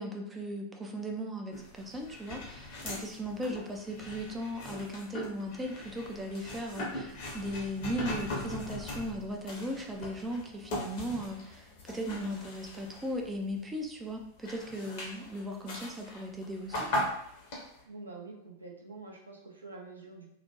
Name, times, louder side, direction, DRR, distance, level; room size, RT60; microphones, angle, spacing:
voice 1, 0.0-16.9, equal, 15° right, 2 dB, 0.3 m, -37 dB
sound 1, 1.5-13.6 14.1-17.8, left 1 dB, 50° left, 0.7 m, -40 dB
voice 2, 17.9-20.3, right 3 dB, 80° right, 0 dB, 0.5 m, -46 dB
2.3 x 2.1 x 2.8 m, 0.74 s
figure-of-eight pair, 90°, 0 cm